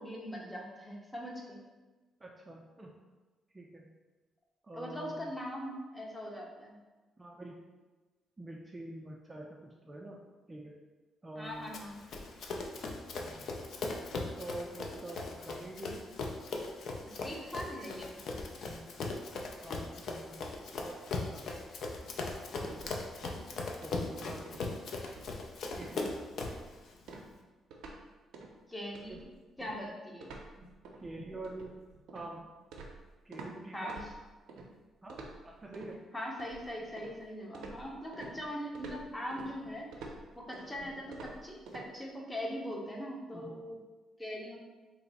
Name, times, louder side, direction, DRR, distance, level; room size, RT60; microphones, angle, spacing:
voice 1, 0.0-1.6 4.7-6.7 11.4-12.1 17.0-18.2 22.5-22.8 28.7-29.3 29.6-30.3 33.7-34.1 36.1-39.9 40.4-43.8 44.2-44.6, equal, 15° left, -1 dB, 0.7 m, -41 dB
voice 2, 2.2-2.9 3.5-3.9 4.6-5.3 7.2-7.6 8.4-10.2 10.5-10.7 11.2-11.7 13.2-13.5 14.3-16.1 18.7-18.9 19.6-20.4 20.8-21.5 22.6-23.0 23.8-24.7 25.7-26.1 29.1-29.2 31.0-31.8 32.1-32.5 33.2-33.9 35.0-36.0 43.3-43.6, right 2 dB, 20° right, -1 dB, 0.4 m, -46 dB
Run, 11.7-26.7, left 3 dB, 65° left, 0.4 m, -39 dB
sound 1, 22.7-23.5 23.8-24.1 24.5-24.7 25.1-25.5 25.7-26.0 26.4-26.7 27.1-28.0 28.3-28.6 28.9-33.5 33.9-34.7 35.1-35.9 36.4-37.2 37.5-41.9, right 3 dB, 85° right, 0.5 m, -49 dB
3.2 x 2.0 x 3.9 m, 1.2 s
cardioid pair, 90°, 0 cm